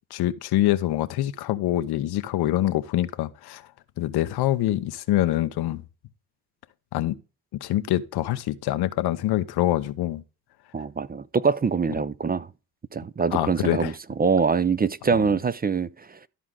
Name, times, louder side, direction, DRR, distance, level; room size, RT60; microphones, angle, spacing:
voice 1, 0.1-3.6 4.0-5.8 6.9-7.1 7.6-10.2 13.3-13.9 15.1-15.2, left 14 dB, 85° left, 0.8 m, -25 dB
voice 2, 10.7-12.5 12.9-13.9 14.2-16.2, right 5 dB, 25° right, 0.5 m, -24 dB
13.0 x 4.7 x 3.7 m
cardioid pair, 75°, 37 cm